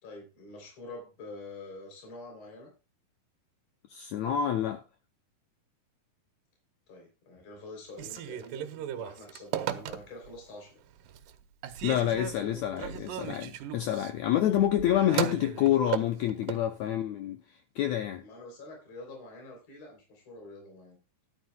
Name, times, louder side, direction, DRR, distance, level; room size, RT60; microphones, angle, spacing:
voice 1, 0.0-2.7 6.9-10.8 12.3-13.0 14.3-14.7 18.2-21.0, left 2 dB, 50° left, 4.5 m, -46 dB
voice 2, 3.9-4.8 11.8-17.4 17.7-18.2, left 11 dB, 90° left, 1.6 m, -28 dB
Telephone, 7.9-10.4 10.9-11.4 11.6-16.7, right 11 dB, 75° right, 2.3 m, -36 dB
13.0 x 11.5 x 2.3 m
omnidirectional pair, 4.0 m